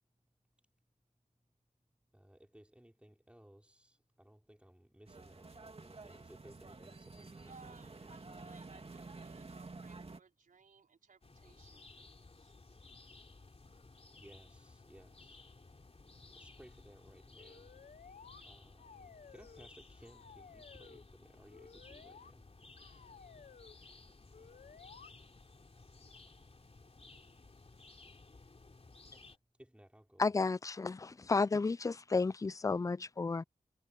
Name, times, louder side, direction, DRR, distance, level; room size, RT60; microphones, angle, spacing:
voice 1, 2.1-8.2 14.1-17.9 18.4-22.5 29.5-30.3, equal, 10° right, 3.6 m, -60 dB
sound 1, 5.1-10.2, right 3 dB, 45° right, 2.7 m, -50 dB
voice 2, 7.5-12.6, right 5 dB, 80° right, 4.7 m, -62 dB
sound 2, 11.2-29.4, left 3 dB, 45° left, 3.2 m, -57 dB
sound 3, 17.4-18.4 18.8-19.7 20.0-21.0 21.5-22.3 22.8-23.8 24.3-25.1, left 6 dB, 75° left, 1.0 m, -56 dB
voice 3, 30.2-33.4, left 4 dB, 25° left, 0.4 m, -32 dB
cardioid pair, 40°, 14 cm